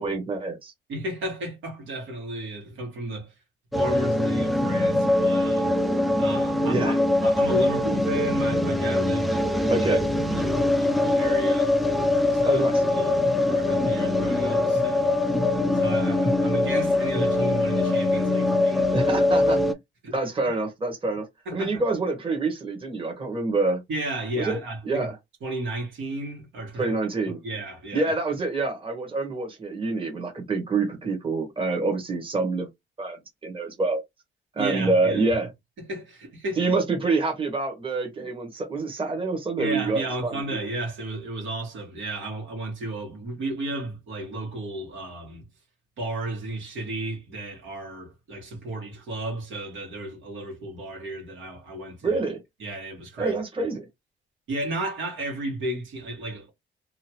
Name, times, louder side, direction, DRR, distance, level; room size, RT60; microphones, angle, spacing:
voice 1, 0.0-0.7 6.7-7.0 9.7-10.0 12.4-12.8 18.9-19.6 20.1-21.3 21.5-23.8 24.4-24.6 24.8-25.2 26.8-27.4 27.9-32.7 33.0-34.0 34.5-35.5 36.6-40.6 52.0-52.4 53.2-53.9, right 3 dB, 25° right, 1.2 m, -26 dB
voice 2, 0.9-3.3 3.7-6.9 7.2-9.9 10.2-12.6 12.9-15.4 15.7-19.1 20.0-20.1 21.4-21.8 23.9-25.1 25.4-27.0 27.4-28.1 34.6-35.4 35.8-36.7 39.6-45.4 46.0-52.2 52.6-53.4 54.5-56.5, right 1 dB, 75° right, 1.6 m, -33 dB
sound 1, 3.7-19.7, left 2 dB, ahead, 0.4 m, -23 dB
2.8 x 2.5 x 2.9 m
cardioid pair, 90°, 20 cm